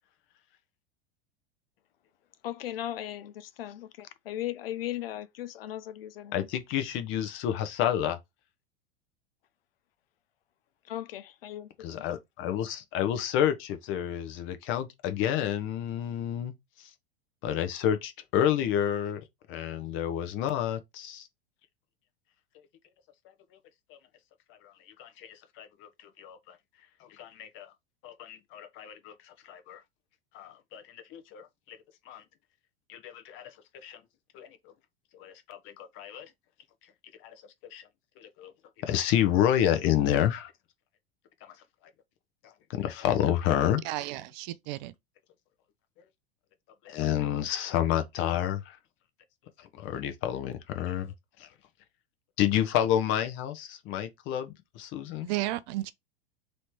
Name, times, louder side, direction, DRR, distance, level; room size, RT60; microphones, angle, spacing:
voice 1, 2.4-6.4 10.9-12.0, left 12 dB, 75° left, 0.5 m, -37 dB
voice 2, 6.3-8.2 11.8-16.5 16.8-16.9 17.4-19.2 19.5-21.3 23.9-24.0 24.6-24.7 25.0-25.9 26.2-26.5 27.2-27.7 28.0-29.1 29.4-29.8 30.3-31.8 32.1-32.2 32.9-33.5 33.8-34.0 34.3-34.5 35.2-36.3 37.2-37.4 37.7-37.8 38.2-38.5 38.8-40.5 42.7-43.8 46.8-48.8 49.6-51.1 51.4-51.5 52.4-55.3, left 10 dB, 40° left, 0.9 m, -29 dB
voice 3, 43.8-44.9 55.2-55.9, right 16 dB, 50° right, 0.5 m, -33 dB
3.2 x 2.9 x 4.6 m
hypercardioid pair, 90°, 30 cm